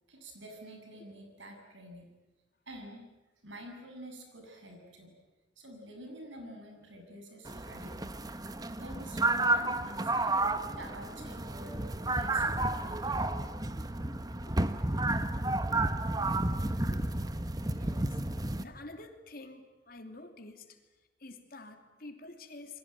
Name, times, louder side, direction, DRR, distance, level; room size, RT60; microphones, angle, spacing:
voice 1, 0.1-2.1 2.7-3.1 3.4-5.1 5.6-8.0 8.7-10.4 10.7-13.3, right 1 dB, 85° right, 4 dB, 7.5 m, -48 dB
sound 1, 7.5-18.6, right 2 dB, 20° right, 1.1 m, -31 dB
voice 2, 14.5-14.8 16.7-17.0 17.5-18.2 18.6-20.8 21.2-22.8, left 2 dB, 50° left, 6 dB, 2.9 m, -49 dB
28.5 x 23.0 x 9.0 m, 1.2 s
head